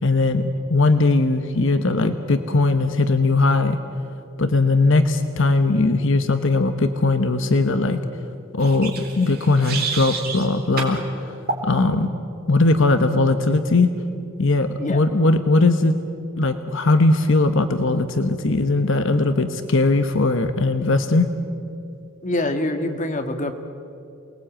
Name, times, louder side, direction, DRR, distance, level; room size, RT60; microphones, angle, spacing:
voice 1, 0.0-3.8 4.4-8.0 8.5-11.0 11.6-12.1 12.5-13.9 14.4-16.0 16.4-21.3, left 2 dB, 60° left, 8 dB, 1.1 m, -19 dB
sound 1, 8.6-10.5 10.8-11.0 11.5-11.7, right 4 dB, 45° right, 3.9 m, -29 dB
voice 2, 22.2-23.5, left 1 dB, 35° left, 7 dB, 1.6 m, -25 dB
28.5 x 20.0 x 8.9 m, 2.7 s
head